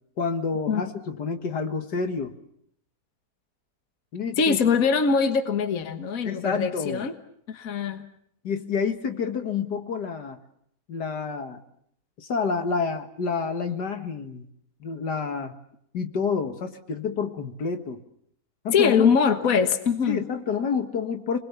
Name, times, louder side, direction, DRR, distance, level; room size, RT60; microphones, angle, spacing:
voice 1, 0.2-2.3 4.1-4.6 6.2-7.0 8.4-10.4 10.9-11.6 12.2-14.5 14.8-15.5 15.9-18.0 18.6-19.2 20.1-21.4, left 5 dB, 80° left, 7 dB, 2.3 m, -28 dB
voice 2, 4.4-7.1 7.5-8.0 18.7-20.2, left 6 dB, 60° left, 8 dB, 1.8 m, -22 dB
29.0 x 21.5 x 7.1 m, 0.69 s
omnidirectional pair, 1.7 m